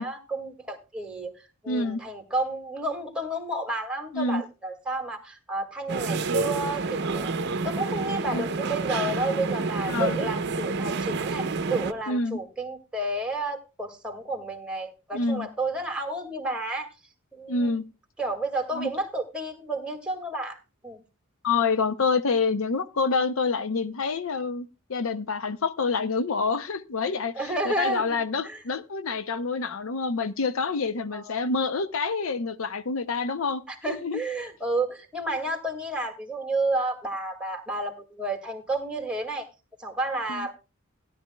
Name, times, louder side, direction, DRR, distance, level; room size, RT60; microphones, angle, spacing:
voice 1, 0.0-1.3 1.6-7.3 7.6-16.9 17.3-17.7 18.2-21.0 27.3-28.2 28.4-28.6 31.1-31.2 33.7-39.5 39.8-40.5, right 2 dB, 5° right, 2.0 m, -31 dB
voice 2, 1.7-2.0 4.1-4.4 8.3-8.5 9.9-10.2 12.1-12.4 15.1-15.5 17.5-17.8 18.7-18.9 21.4-33.6 33.9-34.2 40.3-40.5, left 4 dB, 70° left, 0.6 m, -27 dB
sound 1, 5.9-11.9, right 3 dB, 55° right, 0.7 m, -29 dB
16.5 x 11.0 x 2.2 m
head